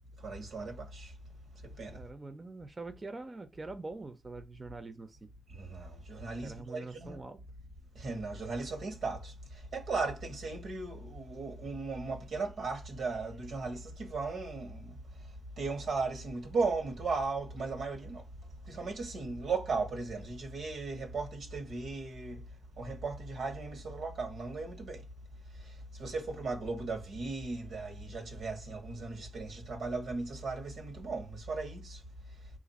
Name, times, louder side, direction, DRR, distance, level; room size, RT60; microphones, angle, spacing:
voice 1, 0.2-1.1 1.6-2.0 5.5-7.2 7.9-14.9 15.6-18.2 18.7-22.4 22.8-25.0 25.6-32.0, right 3 dB, 80° right, 1.2 m, -37 dB
voice 2, 1.9-5.3 6.4-7.4, right 3 dB, 30° right, 0.5 m, -44 dB
4.5 x 2.5 x 4.0 m
cardioid pair, 80°, 0 cm